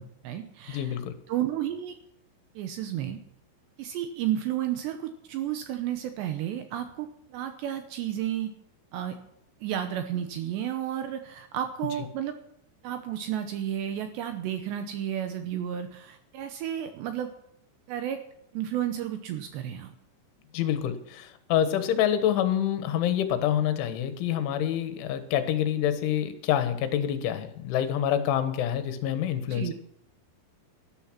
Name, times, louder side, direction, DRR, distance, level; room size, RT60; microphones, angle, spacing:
voice 1, 0.0-1.0 1.3-2.0 2.6-3.2 3.8-8.5 8.9-9.2 9.6-12.3 12.8-17.3 17.9-18.2 18.5-19.9 29.5-29.7, right 11 dB, 75° right, 7 dB, 2.7 m, -32 dB
voice 2, 0.7-1.2 20.5-29.7, left 10 dB, 75° left, 10 dB, 3.5 m, -27 dB
12.5 x 12.5 x 5.9 m, 0.74 s
omnidirectional pair, 5.8 m